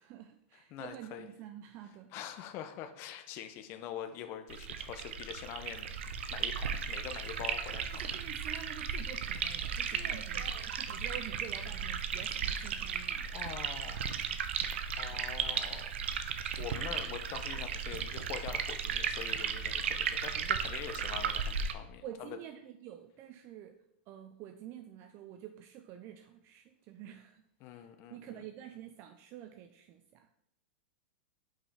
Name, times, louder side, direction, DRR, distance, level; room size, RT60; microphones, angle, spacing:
voice 1, 0.0-2.1 7.9-13.3 22.0-23.8 24.1-27.4 27.7-30.4, right 10 dB, 40° right, 7 dB, 0.4 m, -48 dB
voice 2, 0.5-1.3 2.1-5.9 6.3-8.0 13.3-14.0 15.0-15.9 16.6-22.4 27.6-28.5, left 10 dB, 40° left, 7 dB, 0.5 m, -44 dB
sound 1, 4.5-21.7, right 7 dB, 75° right, 0.6 m, -35 dB
5.4 x 5.0 x 3.5 m, 0.79 s
hypercardioid pair, 130°, 6 cm